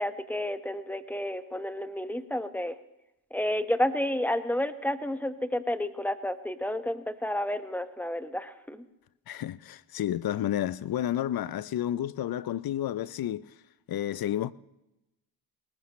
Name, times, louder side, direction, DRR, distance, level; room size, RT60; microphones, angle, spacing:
voice 1, 0.0-2.7 3.3-8.8, left 1 dB, 5° left, 1.3 m, -31 dB
voice 2, 9.3-13.5 13.9-14.5, left 11 dB, 55° left, 0.7 m, -31 dB
20.5 x 18.5 x 3.2 m
supercardioid pair, 55°, 43 cm